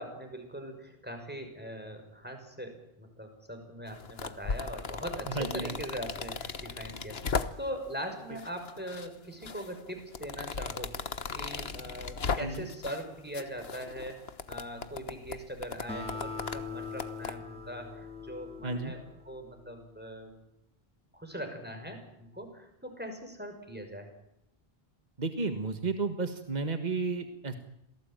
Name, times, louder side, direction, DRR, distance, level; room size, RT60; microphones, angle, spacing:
voice 1, 0.0-11.0 11.3-14.2 14.5-20.3 21.1-24.1, equal, 10° right, 5 dB, 6.3 m, -41 dB
sound 1, 3.9-7.9 8.4-9.1 9.4-13.0 13.3-17.3, left 5 dB, 75° left, 1.5 m, -37 dB
voice 2, 5.4-5.7 12.4-12.7 18.6-18.9 25.2-27.6, right 3 dB, 45° right, 7 dB, 1.8 m, -32 dB
Acoustic guitar, 15.9-19.5, left 4 dB, 5° left, 5.2 m, -41 dB
27.5 x 18.5 x 9.1 m, 0.80 s
omnidirectional pair, 1.0 m